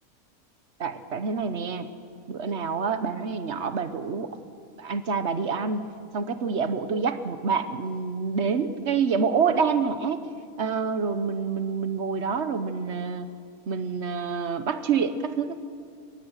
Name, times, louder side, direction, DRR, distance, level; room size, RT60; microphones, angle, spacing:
voice 1, 0.8-1.9 2.3-4.4 4.8-5.8 6.1-10.2 10.6-13.3 13.7-15.6, right 5 dB, 55° right, 11 dB, 1.2 m, -27 dB
23.0 x 18.5 x 6.5 m, 2.3 s
omnidirectional pair, 1.5 m